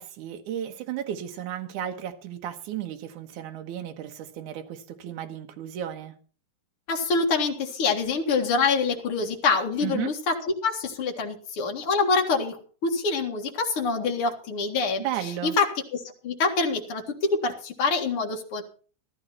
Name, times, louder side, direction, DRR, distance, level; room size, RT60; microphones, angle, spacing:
voice 1, 0.0-6.1 9.8-10.1 15.0-15.5, right 11 dB, 65° right, 2.5 m, -34 dB
voice 2, 6.9-15.0 15.4-18.6, left 4 dB, 45° left, 2.4 m, -26 dB
14.5 x 13.5 x 4.3 m
omnidirectional pair, 4.1 m